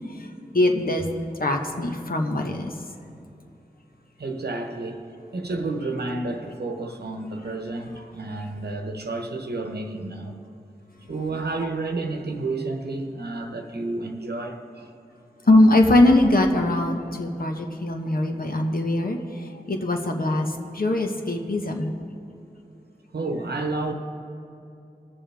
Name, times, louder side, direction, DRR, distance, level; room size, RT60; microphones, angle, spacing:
voice 1, 0.5-1.1 1.4-2.7 11.4-11.5 15.5-20.5 20.7-21.9, left 1 dB, 60° left, 3 dB, 1.1 m, -21 dB
voice 2, 4.2-5.0 5.3-10.4 11.1-14.9 23.1-23.9, right 2 dB, 75° right, 4 dB, 1.0 m, -30 dB
20.0 x 7.1 x 3.4 m, 2.7 s
cardioid pair, 40°, 17 cm